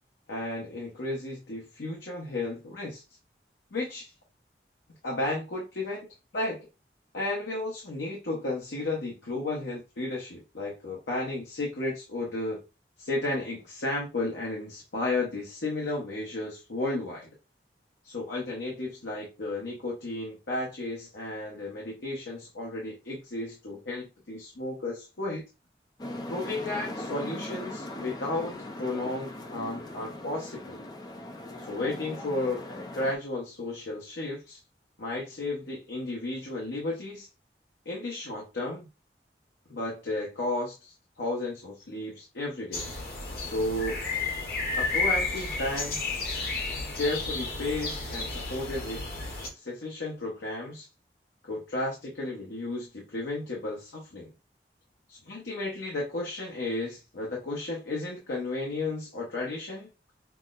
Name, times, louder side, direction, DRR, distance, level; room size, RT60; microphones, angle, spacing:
voice 1, 0.3-3.0 3.7-4.1 5.0-6.1 6.3-6.6 7.1-12.6 13.0-17.3 18.0-25.4 26.3-30.8 31.6-34.6 35.0-37.3 37.9-38.9 39.7-42.8 43.4-44.0 44.8-46.0 47.0-49.0 49.5-50.9 51.4-54.3 55.1-59.9, left 2 dB, 85° left, -2 dB, 0.9 m, -33 dB
sound 1, 26.0-33.2, left 1 dB, 25° left, 0.5 m, -39 dB
sound 2, 42.7-49.5, left 3 dB, 55° left, 1.2 m, -32 dB
5.7 x 2.1 x 2.4 m, 0.30 s
head